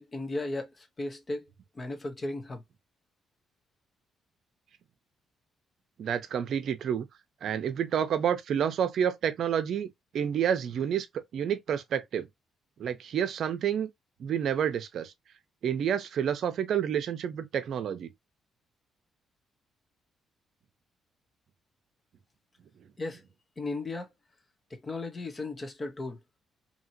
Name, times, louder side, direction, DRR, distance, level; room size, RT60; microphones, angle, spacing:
voice 1, 0.0-1.4 1.7-2.6 23.0-23.2 23.6-24.1 24.8-26.2, left 2 dB, 30° left, 0.9 m, -35 dB
voice 2, 6.0-7.1 7.4-9.9 10.1-12.3 12.8-13.9 14.2-15.1 15.6-18.1, right 8 dB, 65° right, 0.6 m, -29 dB
2.8 x 2.8 x 2.6 m
cardioid pair, 90°, 0 cm